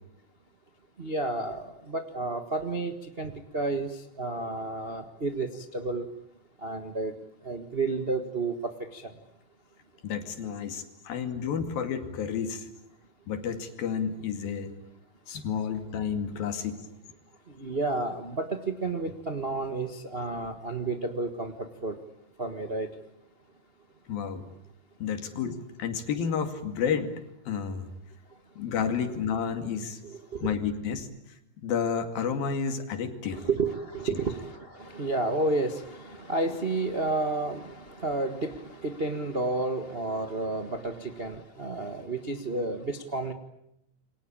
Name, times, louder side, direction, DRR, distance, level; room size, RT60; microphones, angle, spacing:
voice 1, 1.0-3.9 4.2-6.1 6.6-7.1 7.4-9.1 17.6-22.0 22.4-22.9 30.0-30.5 33.3-43.3, right 3 dB, 60° right, 6 dB, 0.6 m, -31 dB
voice 2, 10.0-12.7 13.3-14.7 15.3-16.8 24.1-24.5 25.0-27.9 28.6-30.0 30.4-31.1 31.6-33.4 34.1-34.2, left 7 dB, 90° left, 7 dB, 4.1 m, -31 dB
28.5 x 23.5 x 8.8 m, 0.81 s
omnidirectional pair, 4.0 m